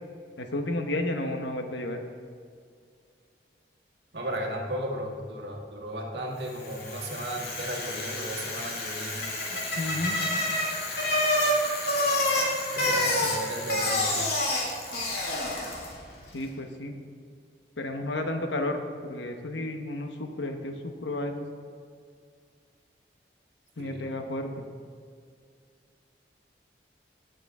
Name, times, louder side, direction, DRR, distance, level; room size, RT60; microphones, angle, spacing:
voice 1, 0.4-2.0 9.7-10.2 13.2-13.3 16.3-16.9 17.8-21.4 23.8-24.7, left 1 dB, 90° left, 5 dB, 1.1 m, -32 dB
voice 2, 4.1-10.1 12.7-14.2 23.8-24.0, right 1 dB, 75° right, 0 dB, 1.7 m, -35 dB
Bicycle, 6.6-16.0, left 1 dB, 65° left, 2.1 m, -28 dB
17.0 x 6.7 x 3.6 m, 2.1 s
head